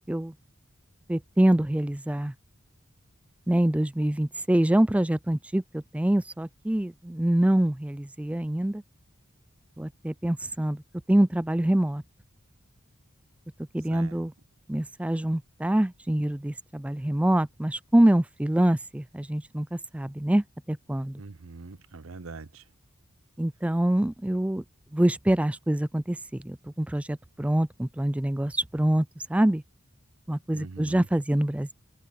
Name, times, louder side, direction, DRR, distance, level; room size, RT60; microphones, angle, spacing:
voice 1, 1.1-2.3 3.5-8.8 9.8-10.8 11.1-12.0 13.7-14.3 14.7-21.2 23.4-24.6 24.9-26.2 26.4-29.6 30.3-31.7, right 1 dB, 5° right, 0.3 m, -25 dB
voice 2, 21.2-22.6 30.5-31.1, right 3 dB, 85° right, 0.8 m, -42 dB
open air
head